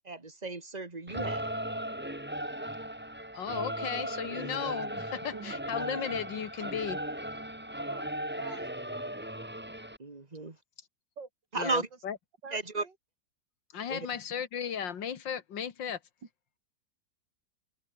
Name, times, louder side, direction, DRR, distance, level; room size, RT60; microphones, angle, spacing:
voice 1, 0.1-1.5 10.0-10.6 11.5-11.9 12.5-12.8 13.9-14.1, right 3 dB, 20° right, 2.2 m, -34 dB
Singing / Musical instrument, 1.1-10.0, right 1 dB, 5° right, 2.4 m, -37 dB
voice 2, 3.3-7.0 11.6-12.2 13.7-16.0, left 8 dB, 90° left, 2.3 m, -35 dB
voice 3, 8.3-8.7 11.2-11.3 11.6-11.8 12.4-12.9, right 4 dB, 80° right, 3.9 m, -45 dB
omnidirectional pair, 1.9 m